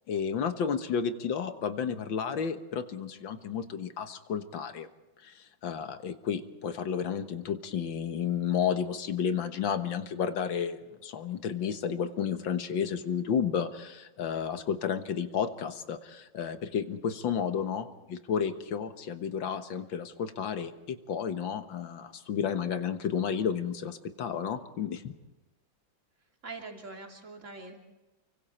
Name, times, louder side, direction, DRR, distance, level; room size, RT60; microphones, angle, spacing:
voice 1, 0.1-4.9 5.2-25.1, left 7 dB, 80° left, 9 dB, 2.1 m, -32 dB
voice 2, 26.4-27.8, right 3 dB, 40° right, 2 dB, 3.3 m, -43 dB
29.5 x 24.5 x 4.4 m, 1.1 s
omnidirectional pair, 2.1 m